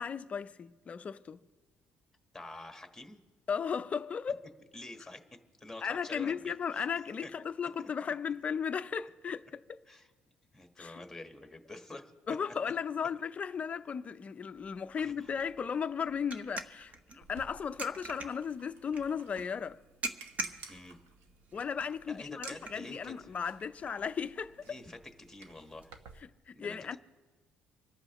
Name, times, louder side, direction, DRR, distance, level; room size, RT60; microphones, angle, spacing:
voice 1, 0.0-1.4 3.5-4.4 5.8-9.8 10.8-11.0 12.3-19.8 21.5-24.8 26.5-27.0, left 6 dB, 35° left, 0.5 m, -36 dB
voice 2, 2.3-3.2 4.7-6.9 7.2-7.3 7.8-7.9 9.9-10.1 10.5-12.1 12.5-12.6 15.0-15.4 20.6-21.0 22.1-23.3 24.7-25.0 25.3-25.9 26.6-27.0, left 2 dB, 5° left, 1.4 m, -47 dB
sound 1, 14.6-25.9, right 2 dB, 35° right, 1.0 m, -46 dB
sound 2, 17.2-26.2, right 5 dB, 85° right, 1.1 m, -55 dB
26.0 x 13.5 x 3.0 m
cardioid pair, 125°, 4 cm